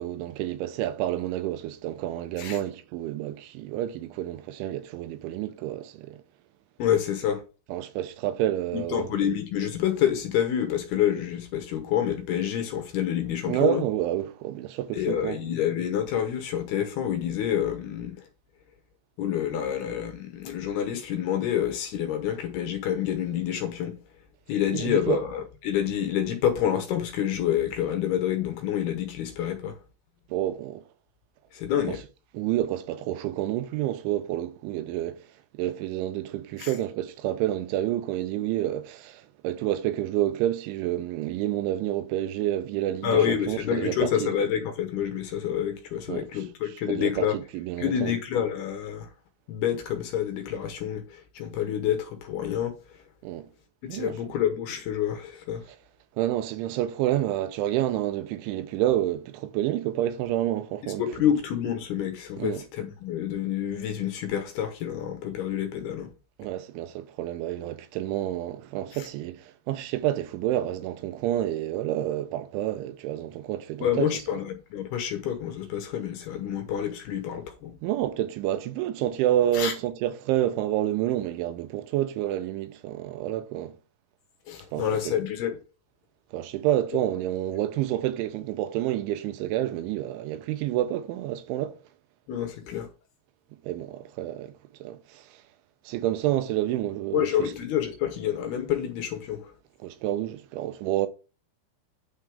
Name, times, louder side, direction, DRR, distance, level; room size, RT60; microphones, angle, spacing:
voice 1, 0.0-6.2 7.7-9.2 13.5-15.4 24.7-25.2 30.3-30.8 31.9-32.0 32.3-35.2 35.5-44.3 46.1-46.3 46.9-48.1 53.2-53.5 53.9-54.3 56.2-61.0 62.4-62.6 66.4-74.1 77.8-83.8 84.7-85.1 86.3-91.8 93.6-94.5 94.8-95.4 95.9-97.5 99.8-101.1, right 13 dB, 85° right, 3.1 m, -29 dB
voice 2, 6.8-7.4 8.7-13.8 14.9-18.3 19.2-24.0 24.5-29.8 31.5-32.0 36.6-36.7 43.0-47.4 47.8-49.1 49.5-52.8 53.9-55.6 61.0-66.1 68.9-69.1 73.8-77.8 79.5-79.7 84.5-85.6 92.3-92.9 97.1-99.5, left 9 dB, 70° left, 2.7 m, -28 dB
9.3 x 8.2 x 3.5 m
omnidirectional pair, 5.5 m